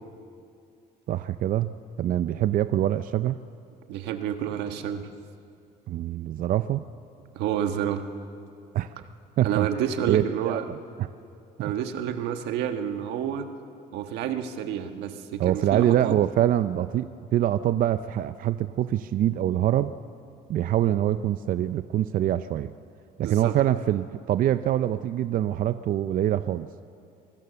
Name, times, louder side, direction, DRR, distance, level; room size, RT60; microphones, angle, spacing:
voice 1, 1.1-3.4 5.9-6.8 8.7-8.9 9.4-9.7 10.1-11.1 15.4-19.9 20.5-22.7 23.2-26.7, right 12 dB, 55° right, 12 dB, 0.5 m, -25 dB
voice 2, 3.9-5.0 7.3-8.0 9.4-10.6 11.6-13.5 13.9-16.1 23.2-23.5, right 9 dB, 90° right, 7 dB, 1.5 m, -29 dB
24.5 x 19.0 x 6.9 m, 2.5 s
cardioid pair, 110°, 17 cm